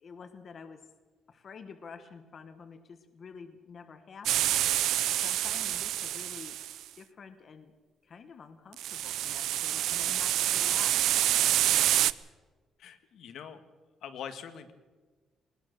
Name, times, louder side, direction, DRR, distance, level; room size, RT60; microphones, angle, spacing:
voice 1, 0.0-0.8 1.3-4.8 5.2-6.6 6.9-7.7 8.0-11.0, left 5 dB, 35° left, 9 dB, 1.3 m, -48 dB
sound 1, 4.3-6.8 8.8-12.1, right 12 dB, 75° right, 0.5 m, -27 dB
voice 2, 12.8-13.6 14.0-14.7, left 8 dB, 65° left, 9 dB, 1.5 m, -43 dB
20.0 x 20.0 x 6.6 m, 1.3 s
cardioid pair, 170°, 0 cm